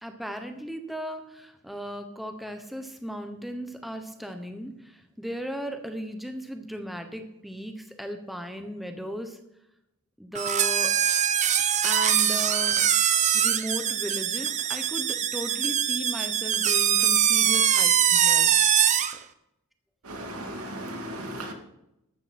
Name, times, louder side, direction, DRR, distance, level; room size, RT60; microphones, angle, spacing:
voice 1, 0.0-9.4 10.2-11.0 11.8-12.8 13.3-18.5, equal, ahead, 1.0 m, -36 dB
sound 1, 10.3-19.2, right 9 dB, 35° right, 0.7 m, -23 dB
voice 2, 20.1-21.5, right 1 dB, 75° right, 2.3 m, -36 dB
13.5 x 12.5 x 4.3 m
head